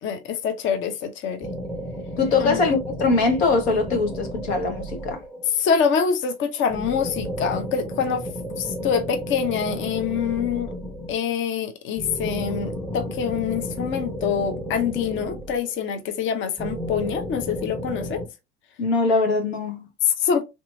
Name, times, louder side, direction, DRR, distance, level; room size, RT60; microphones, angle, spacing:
voice 1, 0.0-1.5 2.4-2.6 5.6-8.2 8.6-10.7 11.1-18.2 20.0-20.4, left 7 dB, 40° left, 0.6 m, -25 dB
sound 1, 1.4-5.6 6.7-11.3 12.0-16.0 16.6-18.3, equal, 5° left, 0.7 m, -33 dB
voice 2, 2.2-5.2 18.8-19.9, left 3 dB, 80° left, 1.1 m, -22 dB
3.4 x 2.8 x 2.5 m
hypercardioid pair, 75°, 31 cm